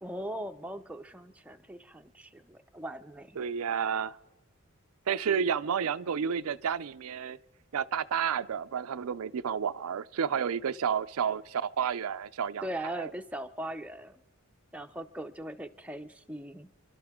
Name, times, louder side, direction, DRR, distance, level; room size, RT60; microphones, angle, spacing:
voice 1, 0.0-3.4 12.6-14.2 14.7-16.7, right 1 dB, 5° right, 0.5 m, -40 dB
voice 2, 3.4-4.2 5.1-7.4 7.7-12.7 12.9-13.1, right 7 dB, 85° right, 0.4 m, -31 dB
28.0 x 12.0 x 3.6 m
head